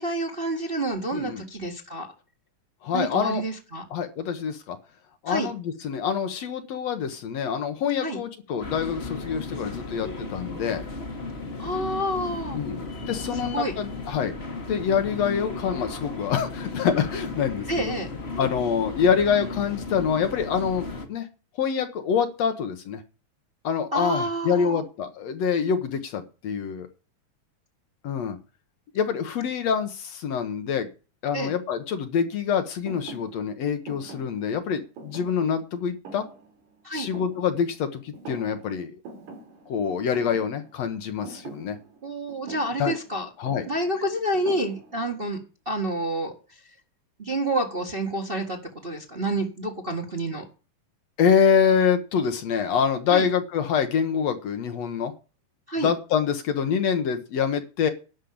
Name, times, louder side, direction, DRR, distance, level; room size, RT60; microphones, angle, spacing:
voice 1, 0.0-2.1 2.9-3.8 5.3-5.5 8.0-8.2 11.6-12.6 13.5-13.7 17.7-18.1 23.9-24.8 31.3-31.5 36.8-37.1 42.0-43.3 43.7-45.4 45.6-46.3 47.2-50.4 53.1-53.3 55.7-55.9, right 1 dB, 25° right, 2 dB, 1.4 m, -28 dB
voice 2, 1.1-1.4 2.8-3.4 3.9-4.8 5.2-10.8 12.5-14.4 14.7-17.7 18.4-21.3 21.6-23.0 23.6-26.9 28.0-28.4 28.9-30.9 31.2-36.3 36.9-39.0 39.7-41.8 42.8-42.9 43.4-43.7 51.2-55.1 55.8-57.9, left 7 dB, 65° left, 8 dB, 2.1 m, -26 dB
sound 1, 8.6-21.1, left 3 dB, 30° left, 1.3 m, -35 dB
Thump thud, 32.9-37.9 38.1-38.8 39.0-45.2, right 3 dB, 70° right, 4.7 m, -45 dB
11.5 x 5.4 x 8.6 m, 0.33 s
omnidirectional pair, 3.5 m